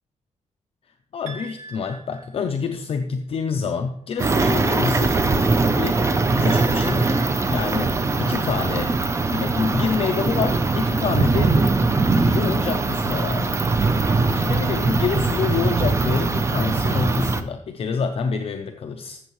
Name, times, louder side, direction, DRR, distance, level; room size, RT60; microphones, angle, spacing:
voice 1, 1.1-5.2 5.8-6.0 6.4-7.2 7.5-8.9 9.3-11.6 12.1-13.6 14.3-19.2, left 5 dB, 50° left, 5 dB, 0.5 m, -27 dB
sound 1, 1.3-2.9 6.5-8.5, right 3 dB, 75° right, 1.1 m, -41 dB
sound 2, 4.2-17.4, right 3 dB, 20° right, 0.5 m, -21 dB
13.5 x 7.1 x 3.1 m, 0.67 s
wide cardioid pair, 170°, 13 cm